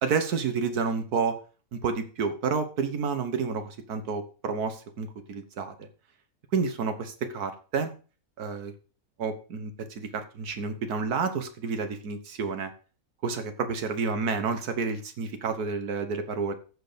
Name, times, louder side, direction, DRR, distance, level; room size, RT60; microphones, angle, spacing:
voice 1, 0.0-1.4 1.7-5.7 6.5-7.9 8.4-8.7 9.2-12.7 13.2-16.5, right 5 dB, 85° right, 9 dB, 1.8 m, -30 dB
14.5 x 4.9 x 5.1 m, 0.37 s
omnidirectional pair, 1.6 m